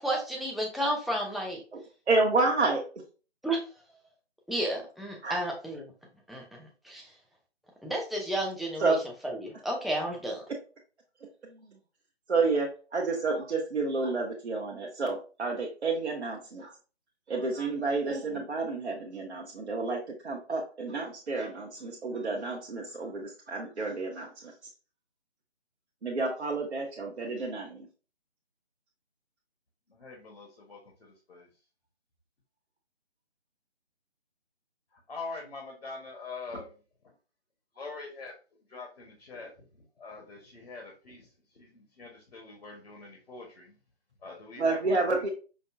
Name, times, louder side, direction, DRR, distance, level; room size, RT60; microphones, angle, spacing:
voice 1, 0.0-1.6 3.4-3.7 4.5-5.9 6.3-7.1 7.8-9.0 9.2-10.5, right 1 dB, ahead, -1 dB, 0.3 m, -32 dB
voice 2, 2.1-2.9 5.2-5.4 8.8-9.0 11.2-11.8 12.3-16.7 17.3-24.5 26.0-27.9 44.6-45.3, right 3 dB, 70° right, -1 dB, 0.8 m, -30 dB
voice 3, 29.9-31.5 35.1-36.7 37.7-38.3 38.7-41.3 41.5-43.7 44.2-45.3, left 3 dB, 60° left, 0 dB, 1.1 m, -44 dB
5.0 x 2.1 x 2.4 m, 0.35 s
figure-of-eight pair, 160°, 34 cm